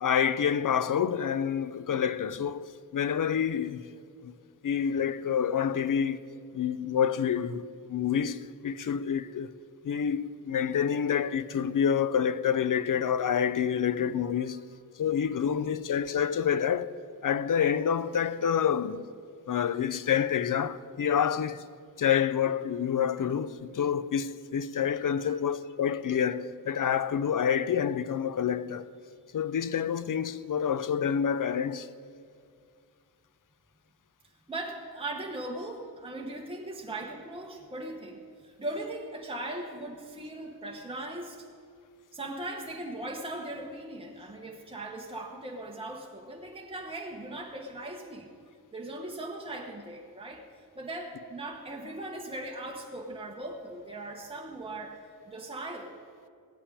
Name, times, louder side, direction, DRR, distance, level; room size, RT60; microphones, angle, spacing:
voice 1, 0.0-2.7 2.9-3.9 4.2-4.4 4.6-6.2 6.5-9.5 9.8-14.6 15.0-17.0 17.2-19.1 19.5-21.7 22.0-28.9 29.3-31.9, left 8 dB, 60° left, 0.5 m, -28 dB
voice 2, 25.1-25.4 34.5-41.5 42.1-48.3 48.7-50.4 50.7-55.0 55.3-55.9, right 1 dB, 15° right, 1.1 m, -39 dB
16.5 x 5.8 x 9.8 m
wide cardioid pair, 120°, 37 cm